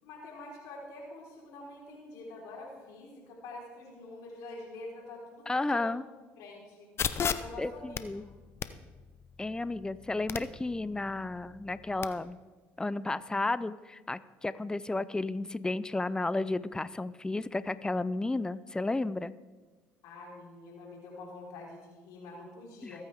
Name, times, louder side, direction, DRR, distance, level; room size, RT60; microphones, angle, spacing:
voice 1, 0.0-6.0 6.4-6.9 7.3-8.3 20.0-23.0, left 2 dB, 75° left, -3 dB, 4.3 m, -46 dB
voice 2, 5.5-6.0 7.6-8.2 9.4-12.4 12.8-19.3 22.8-22.9, left 2 dB, 10° left, 16 dB, 0.6 m, -32 dB
sound 1, 7.0-12.1, left 7 dB, 45° left, 0.8 m, -38 dB
22.5 x 9.0 x 3.6 m, 1.3 s
hypercardioid pair, 70°, 6 cm